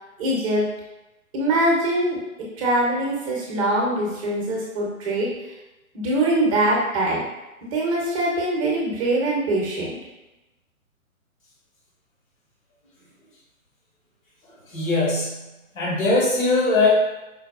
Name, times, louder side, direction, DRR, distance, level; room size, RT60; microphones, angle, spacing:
voice 1, 0.2-0.7 1.3-2.2 2.6-5.3 5.9-7.2 7.7-10.0, right 1 dB, 25° right, -3 dB, 0.6 m, -23 dB
voice 2, 14.7-15.5 15.7-16.9, left 3 dB, 65° left, -4 dB, 1.2 m, -21 dB
4.6 x 2.2 x 2.3 m, 1.0 s
hypercardioid pair, 135°, 43 cm